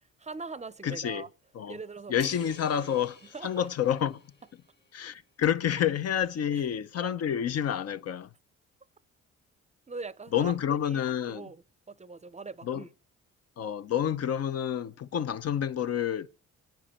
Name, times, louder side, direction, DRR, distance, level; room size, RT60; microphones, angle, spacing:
voice 1, 0.2-1.3 1.7-2.3 2.8-2.9 3.3-3.7 6.5-6.6 9.9-10.5 10.8-11.0 11.3-11.6 11.9-12.9, right 4 dB, 25° right, 0.6 m, -41 dB
voice 2, 0.8-1.2 1.5-1.8 2.1-4.2 4.9-8.3 10.3-11.5 12.6-12.8 13.6-16.3, left 9 dB, 55° left, 0.7 m, -29 dB
sound 1, 2.2-4.9, left 3 dB, 35° left, 2.3 m, -51 dB
26.0 x 9.2 x 4.2 m
cardioid pair, 90°, 30 cm